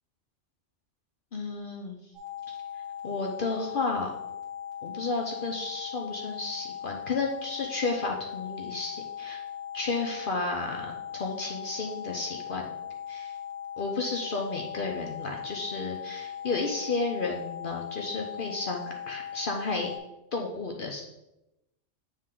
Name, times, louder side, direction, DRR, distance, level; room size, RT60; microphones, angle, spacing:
voice 1, 1.3-2.0 2.5-2.6 3.0-4.1 4.8-9.4 9.7-12.7 13.1-13.4 13.8-19.9 20.3-21.0, left 3 dB, 50° left, 1 dB, 0.8 m, -32 dB
sound 1, 2.1-20.0, left 9 dB, 20° right, 1.9 m, -39 dB
9.0 x 3.2 x 3.7 m, 0.92 s
omnidirectional pair, 1.3 m